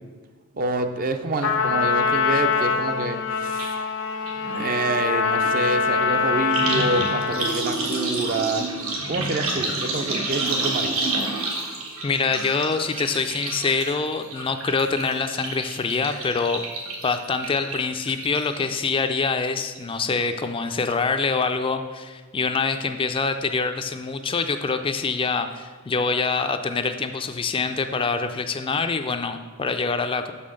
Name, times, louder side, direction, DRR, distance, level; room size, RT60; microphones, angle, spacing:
voice 1, 0.6-3.7 4.5-8.7 9.1-11.0, right 3 dB, 45° right, 7 dB, 0.6 m, -27 dB
Trumpet, 1.4-7.6, left 6 dB, 65° left, 0.6 m, -24 dB
sound 1, 3.6-3.7 4.0-18.6 19.0-19.5 19.8-19.9, right 2 dB, 85° right, 1.7 m, -30 dB
voice 2, 12.0-16.6 17.0-30.3, left 4 dB, 25° left, 7 dB, 0.4 m, -25 dB
6.6 x 5.6 x 6.4 m, 1.5 s
head